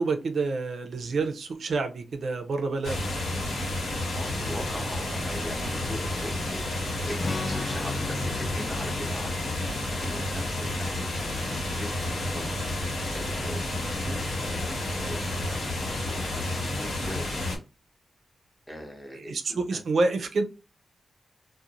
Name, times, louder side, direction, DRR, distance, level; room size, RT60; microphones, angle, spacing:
voice 1, 0.0-3.0 19.1-20.4, right 3 dB, 60° right, 0.4 m, -28 dB
sound 1, 2.8-17.6, left 1 dB, 80° left, 1.1 m, -30 dB
voice 2, 4.2-6.7 7.1-12.4 12.8-17.6 18.7-19.8, equal, 10° left, 0.7 m, -41 dB
Strum, 7.2-12.8, left 4 dB, 45° left, 0.4 m, -38 dB
2.5 x 2.1 x 2.9 m
wide cardioid pair, 140°, 0 cm